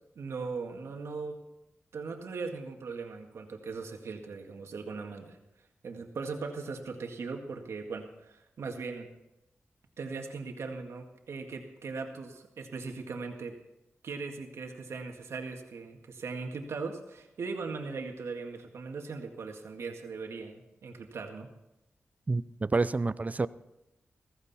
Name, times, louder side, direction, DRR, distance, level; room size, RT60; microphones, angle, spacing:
voice 1, 0.2-1.4 1.9-5.4 5.8-9.1 10.0-13.6 14.0-21.5, right 4 dB, 80° right, 1.9 m, -39 dB
voice 2, 22.3-23.5, right 3 dB, 35° right, 0.5 m, -28 dB
15.5 x 15.0 x 4.2 m
cardioid pair, 55°, 5 cm